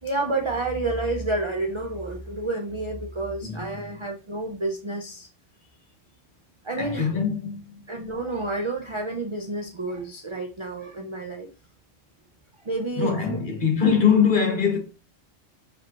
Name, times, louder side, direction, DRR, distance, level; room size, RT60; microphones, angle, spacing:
voice 1, 0.0-5.3 6.6-7.1 7.9-11.5 12.6-13.4, right 2 dB, 50° right, 0.3 m, -29 dB
voice 2, 6.8-7.8 12.9-14.8, left 6 dB, 40° left, 1.1 m, -22 dB
5.1 x 3.2 x 2.9 m
omnidirectional pair, 1.4 m